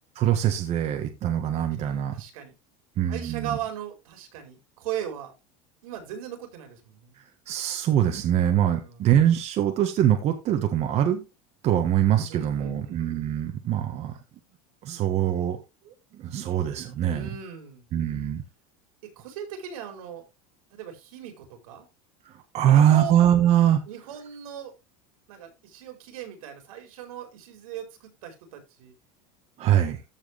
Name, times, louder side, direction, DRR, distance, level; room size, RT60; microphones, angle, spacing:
voice 1, 0.2-2.2 3.0-3.6 7.5-11.2 11.6-14.2 14.8-15.6 15.9-17.3 17.9-18.4 22.2-23.8 29.6-30.0, right 10 dB, 40° right, 5 dB, 1.6 m, -23 dB
voice 2, 1.8-2.5 3.1-5.3 5.8-7.2 8.6-9.0 12.3-13.0 17.0-17.9 19.0-20.2 20.7-21.8 22.7-23.1 23.9-24.8 25.3-28.9, right 10 dB, 85° right, 5 dB, 4.4 m, -38 dB
14.5 x 4.9 x 3.4 m, 0.24 s
supercardioid pair, 145°, 18 cm